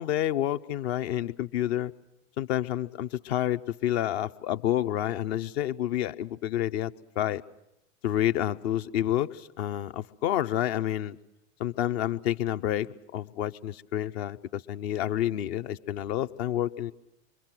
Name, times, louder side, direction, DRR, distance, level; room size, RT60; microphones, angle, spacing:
voice 1, 0.0-1.9 2.4-6.9 7.2-7.4 8.0-11.2 11.6-16.9, left 12 dB, 50° left, 12 dB, 0.9 m, -29 dB
26.5 x 24.0 x 6.0 m, 0.87 s
figure-of-eight pair, 95°, 41 cm